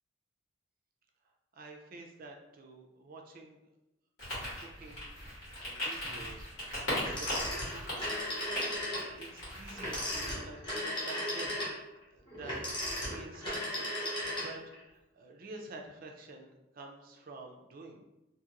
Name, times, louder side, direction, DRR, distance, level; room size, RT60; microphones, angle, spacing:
voice 1, 1.5-3.6 4.3-6.5 6.9-8.2 8.8-11.6 12.1-18.0, right 2 dB, 45° right, 2 dB, 0.4 m, -49 dB
sound 1, 4.2-10.3, left 1 dB, 75° left, 1.4 m, -39 dB
Telephone, 7.0-9.1 9.8-14.8, left 1 dB, 25° left, 0.9 m, -36 dB
2.6 x 2.4 x 2.9 m, 0.95 s
head